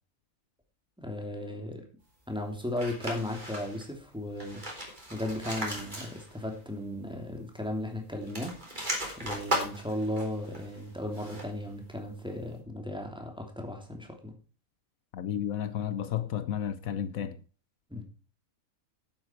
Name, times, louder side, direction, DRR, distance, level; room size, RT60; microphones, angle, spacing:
voice 1, 1.0-1.8 2.3-4.6 5.1-8.5 9.2-14.3 17.9-18.0, left 1 dB, 5° right, 2.9 m, -35 dB
sound 1, 2.8-3.9 4.3-6.6 6.8-6.9 8.1-11.7, right 1 dB, 30° right, 4.1 m, -37 dB
voice 2, 15.1-17.4, left 9 dB, 75° left, 1.2 m, -32 dB
11.5 x 9.5 x 4.6 m
omnidirectional pair, 1.5 m